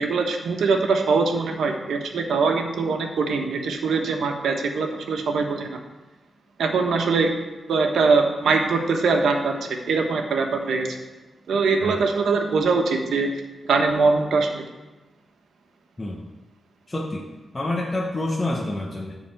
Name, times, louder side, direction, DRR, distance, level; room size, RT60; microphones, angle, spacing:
voice 1, 0.0-5.8 6.6-7.3 7.7-9.5 9.9-10.9 11.5-13.3 13.7-14.6, right 4 dB, 90° right, 3 dB, 1.2 m, -22 dB
voice 2, 16.9-17.3 17.5-19.2, left 2 dB, 20° left, -2 dB, 1.1 m, -28 dB
12.0 x 4.0 x 7.7 m, 1.1 s
cardioid pair, 90°, 0 cm